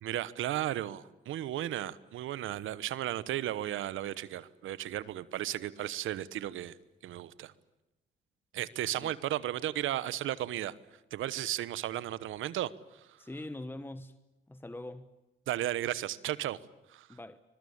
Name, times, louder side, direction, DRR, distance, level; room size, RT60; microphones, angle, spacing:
voice 1, 0.0-6.8 7.0-7.5 8.5-10.7 11.1-12.7 15.5-16.6 16.9-17.1, right 13 dB, 85° right, 1.1 m, -34 dB
voice 2, 13.2-14.1 14.5-15.1 17.1-17.4, left 1 dB, 10° left, 1.2 m, -43 dB
25.5 x 22.5 x 8.7 m
cardioid pair, 80°, 20 cm